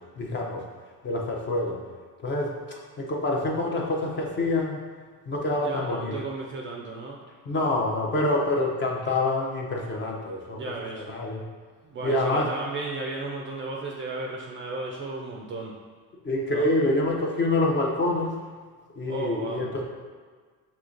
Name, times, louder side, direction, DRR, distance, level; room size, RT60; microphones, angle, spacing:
voice 1, 0.2-0.6 1.0-1.8 2.2-4.8 5.3-6.1 7.5-10.6 10.9-11.4 12.0-12.5 16.2-18.4 19.0-19.8, left 2 dB, 25° left, 0 dB, 0.5 m, -26 dB
voice 2, 5.5-7.2 10.5-11.1 11.8-15.7 16.5-16.7 19.1-19.8, right 3 dB, 30° right, -1 dB, 0.4 m, -34 dB
5.9 x 2.8 x 2.5 m, 1.5 s
cardioid pair, 125°, 42 cm